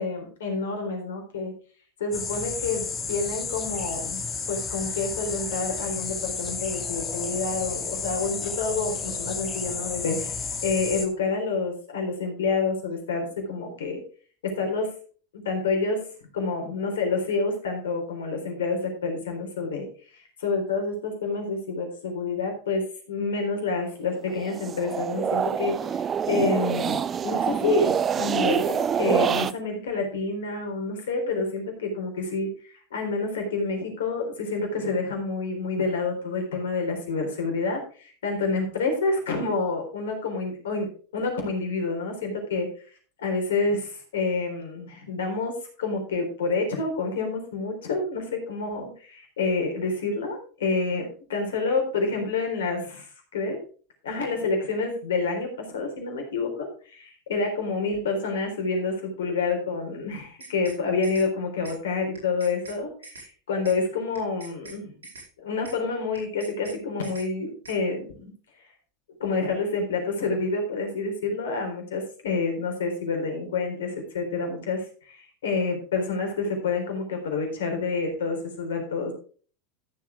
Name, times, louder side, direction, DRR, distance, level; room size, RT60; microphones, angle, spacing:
voice 1, 0.0-1.5 2.0-4.2 4.5-14.0 14.4-14.9 15.3-16.0 16.3-19.8 20.1-25.8 26.3-42.7 43.2-53.6 54.0-64.9 65.4-68.3 69.2-79.1, left 3 dB, 75° left, 4 dB, 3.8 m, -28 dB
sound 1, 2.1-11.1, left 5 dB, 25° left, 2.6 m, -32 dB
sound 2, 24.3-29.5, right 7 dB, 30° right, 0.5 m, -26 dB
sound 3, 60.2-60.8 61.0-61.3 61.6-61.8 62.1-62.8 63.0-63.3 63.6-63.8 64.1-64.8 65.0-65.3 65.6-65.8 66.1-66.8 67.0-67.3 67.6-67.8, right 2 dB, 80° right, 4.7 m, -44 dB
14.0 x 7.4 x 3.7 m, 0.41 s
hypercardioid pair, 85°, 0 cm